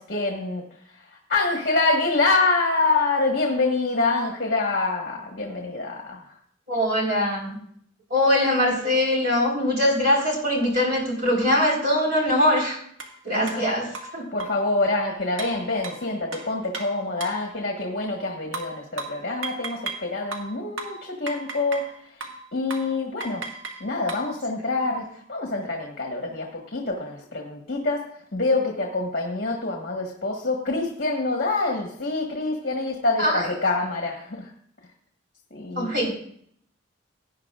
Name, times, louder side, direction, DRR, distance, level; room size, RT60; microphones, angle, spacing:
voice 1, 0.0-6.4 13.3-13.7 14.0-23.5 23.8-34.5 35.5-35.9, left 3 dB, 50° left, 0 dB, 1.5 m, -26 dB
voice 2, 6.7-7.6 8.1-12.8 13.2-13.9 14.1-14.3 33.2-33.4 35.7-36.1, left 1 dB, 45° right, -2 dB, 4.3 m, -22 dB
sound 1, 13.0-13.1 13.5-13.6 13.9-14.7 15.4-17.5 18.5-20.1 20.3-21.9 22.2-22.4 22.7-22.9 23.2-24.3, right 3 dB, 80° right, 1.6 m, -35 dB
17.5 x 9.6 x 2.5 m, 0.64 s
head